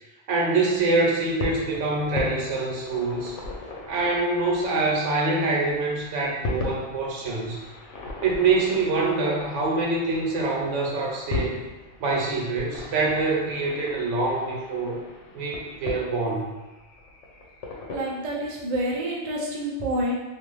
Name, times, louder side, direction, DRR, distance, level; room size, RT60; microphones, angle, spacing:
voice 1, 0.3-3.3 3.9-7.6 8.2-11.6 12.0-15.0 15.3-16.5, right 3 dB, 90° right, -2 dB, 1.0 m, -25 dB
sound 1, 0.6-18.0, left 3 dB, 80° left, 0.9 m, -38 dB
voice 2, 17.9-20.1, right 1 dB, 45° right, -3 dB, 0.5 m, -28 dB
2.5 x 2.5 x 3.1 m, 1.1 s
omnidirectional pair, 1.2 m